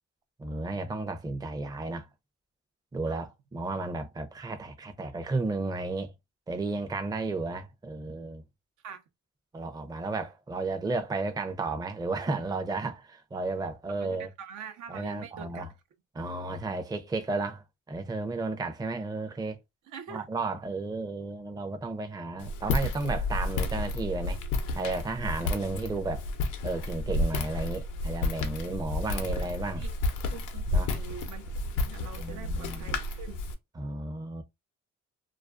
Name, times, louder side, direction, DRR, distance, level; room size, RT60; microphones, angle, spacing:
voice 1, 0.4-2.1 2.9-6.1 6.5-8.4 9.5-14.3 14.9-15.7 16.1-19.6 20.1-24.4 24.8-26.3 26.6-29.8 30.7-30.9 32.2-32.9 33.8-34.4, right 3 dB, 15° right, 0.5 m, -33 dB
voice 2, 14.0-15.7 19.9-20.2 29.2-29.3 29.7-29.9 30.3-33.4, right 8 dB, 80° right, 0.7 m, -44 dB
Walk footsteps, 22.4-33.5, left 2 dB, 85° left, 0.6 m, -31 dB
2.4 x 2.3 x 2.3 m
cardioid pair, 90°, 30 cm